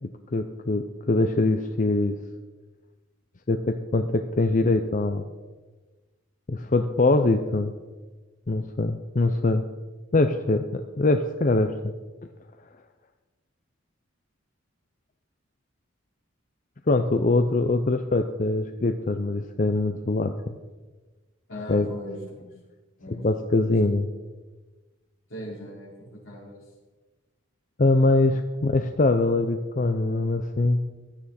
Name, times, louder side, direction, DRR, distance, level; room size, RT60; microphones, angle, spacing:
voice 1, 0.0-2.2 3.5-5.2 6.5-7.7 8.5-9.6 10.1-11.7 16.9-20.3 21.7-21.9 23.2-24.1 27.8-30.8, left 2 dB, 40° left, 7 dB, 0.6 m, -23 dB
voice 2, 21.5-22.5 23.0-23.2 25.3-26.6, equal, 75° left, -4 dB, 5.2 m, -39 dB
16.0 x 12.0 x 4.3 m, 1.3 s
head